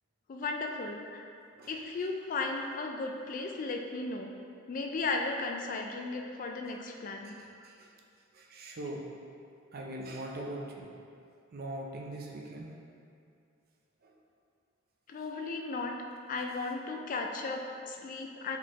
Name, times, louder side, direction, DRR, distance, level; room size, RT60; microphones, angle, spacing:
voice 1, 0.3-1.3 1.7-4.3 4.7-7.4 15.1-16.0 16.3-18.6, left 3 dB, 40° left, 3 dB, 0.3 m, -35 dB
voice 2, 7.2-7.9 8.3-9.0 9.7-10.9 11.5-12.8 14.0-14.2, right 1 dB, 45° right, 0 dB, 0.5 m, -41 dB
4.2 x 4.2 x 3.0 m, 2.5 s
head